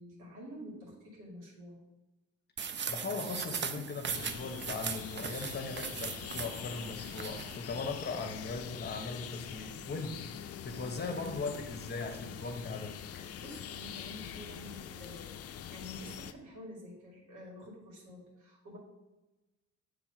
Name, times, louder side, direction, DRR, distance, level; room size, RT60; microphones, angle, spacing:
voice 1, 0.0-1.8 13.4-18.8, left 1 dB, 85° right, -2 dB, 2.3 m, -49 dB
sound 1, 2.6-7.6, right 6 dB, 40° right, 0.5 m, -39 dB
voice 2, 2.9-13.0, left 3 dB, 35° left, 5 dB, 0.9 m, -39 dB
sound 2, 4.1-16.3, left 9 dB, 55° left, 0.5 m, -44 dB
7.1 x 3.5 x 4.9 m, 1.1 s
cardioid pair, 90°, 30 cm